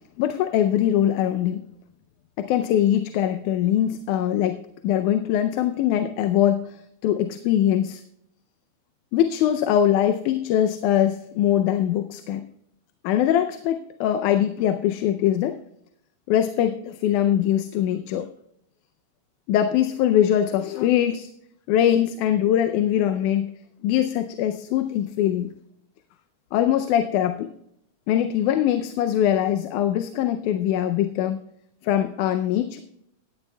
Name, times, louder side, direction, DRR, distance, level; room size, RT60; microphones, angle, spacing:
voice 1, 0.2-1.6 2.4-8.0 9.1-12.4 13.0-15.6 16.3-18.3 19.5-21.3 21.7-23.5 23.8-25.5 26.5-27.5 28.1-31.4 31.8-32.8, left 11 dB, 90° left, 8 dB, 2.1 m, -22 dB
17.0 x 11.5 x 2.2 m, 0.77 s
omnidirectional pair, 3.5 m